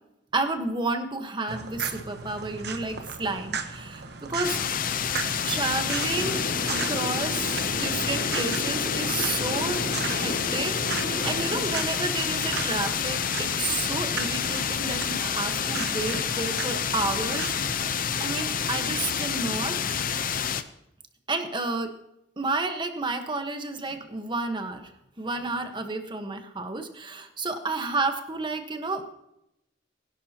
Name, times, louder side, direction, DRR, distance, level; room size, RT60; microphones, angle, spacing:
voice 1, 0.3-4.6 5.4-6.4 6.7-19.8 21.3-21.9 22.4-24.9 25.2-29.1, right 3 dB, 25° right, 6 dB, 1.3 m, -31 dB
sound 1, 1.5-17.7, right 5 dB, 65° right, 1.1 m, -37 dB
sound 2, 4.4-20.6, left 7 dB, 50° left, 0.7 m, -28 dB
sound 3, 6.0-11.7, equal, 70° left, 5.4 m, -35 dB
21.0 x 11.0 x 2.9 m, 0.82 s
head